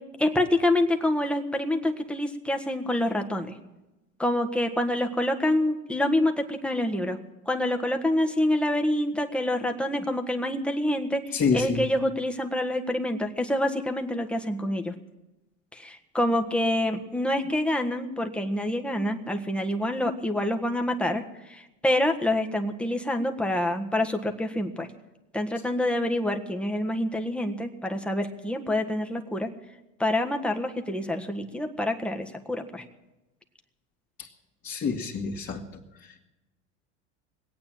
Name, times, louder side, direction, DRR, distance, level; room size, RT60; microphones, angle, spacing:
voice 1, 0.2-3.5 4.2-7.2 7.5-14.9 15.7-21.2 21.5-24.9 25.3-29.5 30.0-32.8, left 1 dB, 5° left, 4 dB, 1.4 m, -27 dB
voice 2, 11.3-11.8 34.2-34.3 34.6-35.6 36.0-36.1, left 5 dB, 35° left, -4 dB, 2.1 m, -27 dB
20.5 x 8.7 x 7.5 m, 1.0 s
hypercardioid pair, 95°, 38 cm